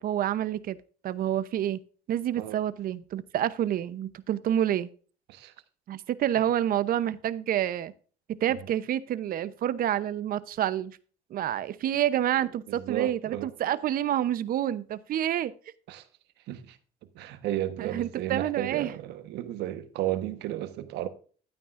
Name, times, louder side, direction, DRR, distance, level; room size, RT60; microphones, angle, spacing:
voice 1, 0.0-0.8 1.0-1.8 2.1-4.9 5.9-7.9 8.4-11.0 11.3-15.5 17.8-18.9, right 11 dB, 60° right, 0.8 m, -28 dB
voice 2, 12.7-13.5 15.9-16.0 16.5-16.8 17.1-21.1, right 13 dB, 85° right, 1.2 m, -33 dB
12.5 x 9.2 x 2.5 m
cardioid pair, 110°, 17 cm